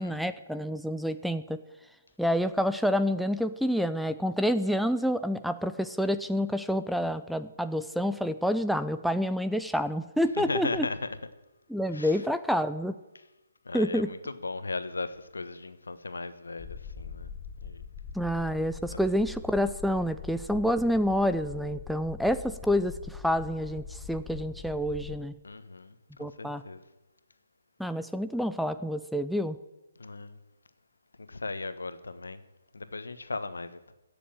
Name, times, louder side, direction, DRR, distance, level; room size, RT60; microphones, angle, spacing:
voice 1, 0.0-1.6 2.2-10.9 11.7-12.9 13.7-14.1 18.1-25.3 26.2-26.6 27.8-29.6, equal, ahead, 0.5 m, -28 dB
voice 2, 10.3-11.1 11.9-12.2 13.6-17.3 17.6-17.8 18.9-19.0 25.4-26.8 30.0-30.4 31.2-32.4 32.7-33.9, left 3 dB, 80° left, 1.3 m, -37 dB
sound 1, 16.6-25.2, left 6 dB, 20° left, 1.0 m, -43 dB
15.5 x 7.0 x 8.9 m
figure-of-eight pair, 145°, 0 cm